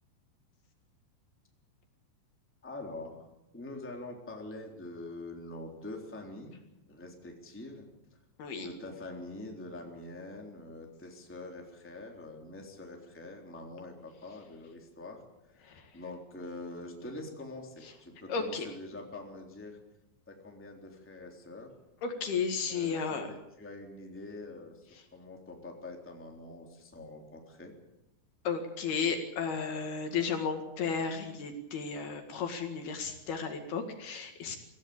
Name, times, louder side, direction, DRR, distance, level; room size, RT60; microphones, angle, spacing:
voice 1, 2.6-3.3 3.5-6.6 6.9-7.8 8.6-15.2 15.5-19.8 20.3-21.7 22.7-27.7, left 2 dB, 5° left, 1 dB, 2.9 m, -45 dB
voice 2, 18.3-18.7 22.0-23.3 28.5-34.6, left 5 dB, 65° left, 5 dB, 3.7 m, -33 dB
25.0 x 16.0 x 8.7 m, 0.91 s
omnidirectional pair, 5.2 m